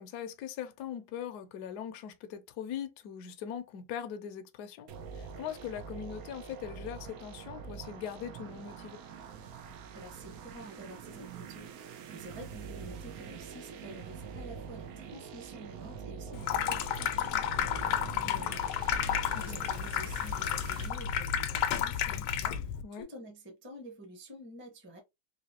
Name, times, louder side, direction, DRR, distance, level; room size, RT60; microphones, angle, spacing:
voice 1, 0.0-4.9 5.1-9.0 18.1-18.6 19.3-19.6 22.8-23.0, left 9 dB, 65° left, 1.0 m, -41 dB
sound 1, 4.9-20.9, right 6 dB, 75° right, 0.8 m, -45 dB
voice 2, 9.9-25.0, right 1 dB, 10° right, 0.7 m, -49 dB
Water tap faucet / Sink (filling or washing), 16.3-22.8, left 9 dB, 85° left, 1.4 m, -32 dB
3.9 x 2.7 x 2.8 m
omnidirectional pair, 2.2 m